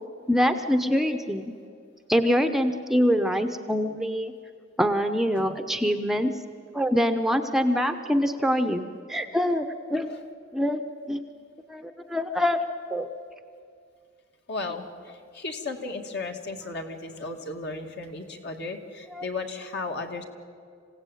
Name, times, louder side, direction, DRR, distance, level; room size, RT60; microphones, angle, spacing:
voice 1, 0.3-1.5 2.1-4.3 4.8-6.3 6.7-10.1 10.5-10.8 11.1-11.2 11.7-12.6 12.9-13.1 19.1-19.2, equal, ahead, 8 dB, 0.8 m, -24 dB
voice 2, 14.5-20.2, left 3 dB, 55° left, 3 dB, 2.3 m, -35 dB
27.0 x 16.5 x 9.2 m, 2.3 s
head